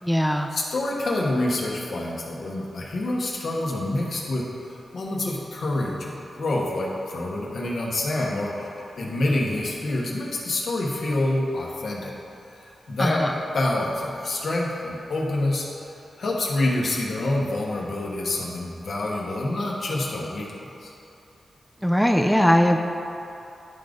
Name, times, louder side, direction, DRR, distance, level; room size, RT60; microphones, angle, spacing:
voice 1, 0.0-0.5 13.0-13.4 21.8-22.8, equal, ahead, 3 dB, 0.4 m, -20 dB
voice 2, 0.5-8.7 9.0-12.1 12.9-13.2 13.5-15.7 16.2-20.5 20.8-20.9, left 2 dB, 75° left, -3 dB, 1.2 m, -27 dB
10.5 x 3.6 x 3.9 m, 2.8 s
cardioid pair, 75°, 0 cm